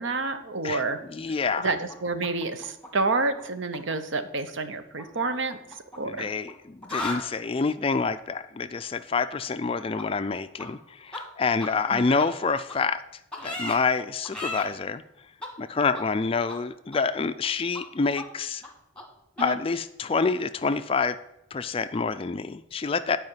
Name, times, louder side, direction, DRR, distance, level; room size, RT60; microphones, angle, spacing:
voice 1, 0.0-1.0 1.3-6.3 11.9-12.2 19.4-19.6, right 3 dB, 65° right, 9 dB, 0.8 m, -29 dB
voice 2, 1.1-1.7 6.0-13.0 13.4-15.0 15.6-18.6 19.4-21.2 21.5-23.2, left 4 dB, 25° left, 11 dB, 0.3 m, -27 dB
sound 1, 1.9-3.4 3.7-3.9 5.0-6.5 6.8-7.2 10.0-10.1 10.6-10.7 11.1-11.2 11.6-11.7 12.2-12.3 12.7-12.8 13.3-13.8 14.2-14.6 15.4-15.5 15.9-16.0 16.5-16.6 16.9-17.5 17.7-17.8 18.1-18.2 18.6-18.7 19.0-19.1 19.4-19.5, left 2 dB, 5° left, 1.5 m, -35 dB
9.5 x 4.9 x 7.3 m, 0.86 s
head